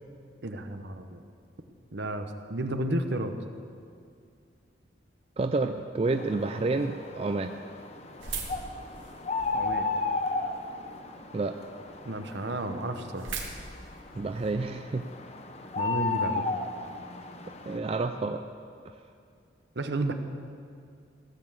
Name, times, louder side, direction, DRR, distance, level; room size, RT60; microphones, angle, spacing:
voice 1, 0.4-1.2 1.9-3.3 9.5-9.9 12.0-13.3 15.8-16.4 19.8-20.1, right 1 dB, 65° right, 7 dB, 0.9 m, -32 dB
voice 2, 5.4-7.5 11.3-11.5 14.2-15.1 17.6-18.4, right 3 dB, 30° right, 6 dB, 0.4 m, -29 dB
sound 1, 6.0-17.8, left 3 dB, 35° left, 0.7 m, -35 dB
sound 2, 8.2-9.7 10.3-10.9 11.4-11.5 11.7-11.8 12.2-12.3 12.5-14.5, right 5 dB, 90° right, 1.8 m, -39 dB
16.0 x 6.7 x 7.6 m, 2.3 s
head